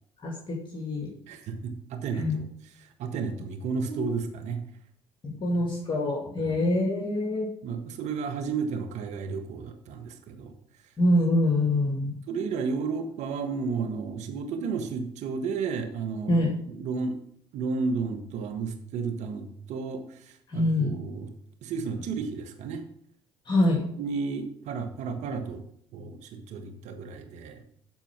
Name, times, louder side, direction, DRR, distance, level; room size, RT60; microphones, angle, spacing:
voice 1, 0.2-1.1 2.2-2.4 3.9-4.0 5.2-7.5 11.0-12.2 16.3-16.5 20.5-20.9 23.5-23.8, left 1 dB, 40° left, 0 dB, 2.3 m, -25 dB
voice 2, 1.3-2.5 2.8-4.6 5.5-5.6 6.4-6.6 7.6-10.5 12.3-16.4 16.7-17.1 17.5-21.3 21.6-22.8 24.0-25.6 25.9-27.6, right 5 dB, 70° right, 5 dB, 1.5 m, -32 dB
13.5 x 4.5 x 6.0 m, 0.68 s
hypercardioid pair, 60°, 12 cm